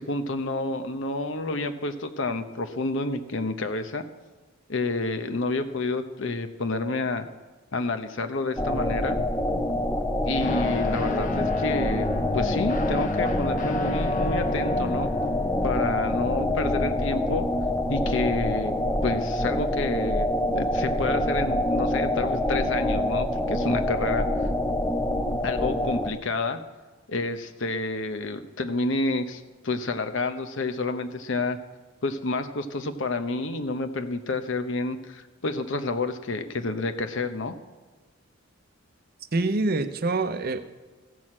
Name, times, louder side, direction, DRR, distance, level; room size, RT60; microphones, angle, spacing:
voice 1, 0.0-4.0 4.7-7.3 7.7-9.2 10.3-12.1 12.3-15.1 15.6-17.5 17.9-18.7 19.0-20.3 20.5-24.5 25.4-26.6 27.1-31.6 32.0-37.5, left 3 dB, 70° left, 8 dB, 0.9 m, -29 dB
sound 1, 8.6-26.1, left 1 dB, 10° left, 0.6 m, -26 dB
Guitar, 10.4-18.1, left 3 dB, 45° left, 0.9 m, -34 dB
voice 2, 39.3-40.6, right 3 dB, 50° right, 10 dB, 0.7 m, -25 dB
15.0 x 6.3 x 7.5 m, 1.3 s
head